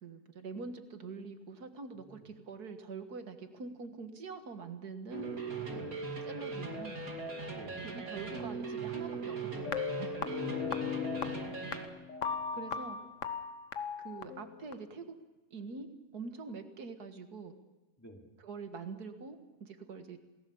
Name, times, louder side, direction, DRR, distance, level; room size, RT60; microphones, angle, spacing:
voice 1, 0.0-5.4 5.7-5.9 6.3-7.0 7.8-10.2 12.5-13.0 14.0-15.2 15.5-17.5 18.4-20.2, right 4 dB, 85° right, 7 dB, 2.1 m, -45 dB
sound 1, 5.1-11.9, right 4 dB, 65° right, 3.0 m, -39 dB
voice 2, 7.5-7.9 10.6-11.3 18.0-18.3, equal, 10° left, 1 dB, 3.0 m, -51 dB
sound 2, 9.6-14.7, left 7 dB, 55° left, 1.4 m, -37 dB
27.5 x 18.5 x 7.0 m, 1.1 s
omnidirectional pair, 1.6 m